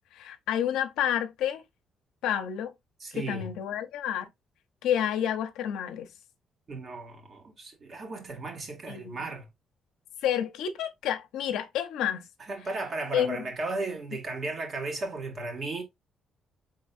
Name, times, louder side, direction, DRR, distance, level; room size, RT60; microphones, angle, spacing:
voice 1, 0.1-1.6 2.2-2.7 3.1-4.3 4.8-6.1 8.9-9.3 10.2-12.2 13.1-13.4, left 10 dB, 90° left, 0.6 m, -29 dB
voice 2, 3.0-3.5 6.7-9.5 12.5-15.8, right 2 dB, 50° right, 1.6 m, -35 dB
4.5 x 3.7 x 2.5 m
cardioid pair, 90°, 0 cm